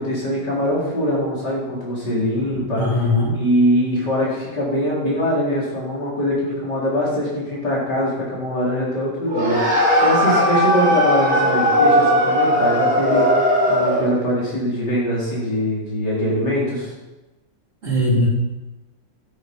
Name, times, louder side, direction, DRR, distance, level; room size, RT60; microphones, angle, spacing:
voice 1, 0.0-2.8 3.3-16.9, equal, 65° left, -5 dB, 4.6 m, -22 dB
voice 2, 2.7-3.4 17.8-18.3, left 1 dB, 40° right, -4 dB, 4.1 m, -19 dB
sound 1, 9.3-14.1, equal, 40° left, 5.3 m, -17 dB
12.0 x 10.5 x 5.3 m, 1.1 s
omnidirectional pair, 2.0 m